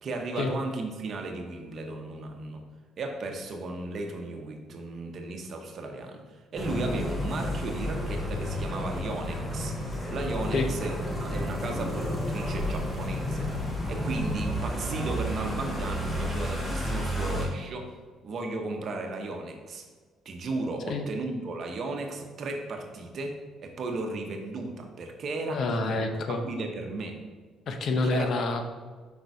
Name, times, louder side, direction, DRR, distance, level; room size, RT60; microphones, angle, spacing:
voice 1, 0.0-2.7 3.0-9.8 10.1-13.5 13.9-18.0 18.2-19.8 20.2-27.3 28.0-28.3, right 2 dB, 50° right, 4 dB, 0.9 m, -35 dB
sound 1, 6.5-17.5, equal, 15° left, 1.3 m, -31 dB
voice 2, 25.5-26.5 27.7-28.7, left 3 dB, 55° left, 6 dB, 0.7 m, -28 dB
5.2 x 3.9 x 4.7 m, 1.4 s
cardioid pair, 100°, 0 cm